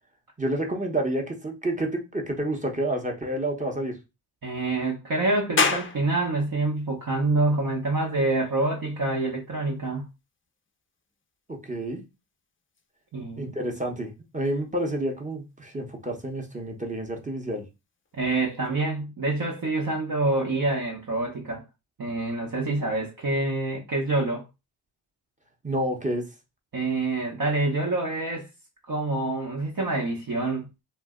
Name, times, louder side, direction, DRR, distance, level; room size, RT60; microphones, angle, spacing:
voice 1, 0.4-4.0 11.5-12.0 13.4-17.6 25.6-26.3, right 1 dB, 15° right, 0.9 m, -29 dB
voice 2, 4.4-10.1 13.1-13.6 18.1-21.6 22.0-24.4 26.7-28.5 28.9-30.8, right 2 dB, 45° right, 0.9 m, -26 dB
sound 1, 5.6-18.7, left 4 dB, 25° left, 0.5 m, -37 dB
2.4 x 2.1 x 3.6 m
cardioid pair, 55°, 50 cm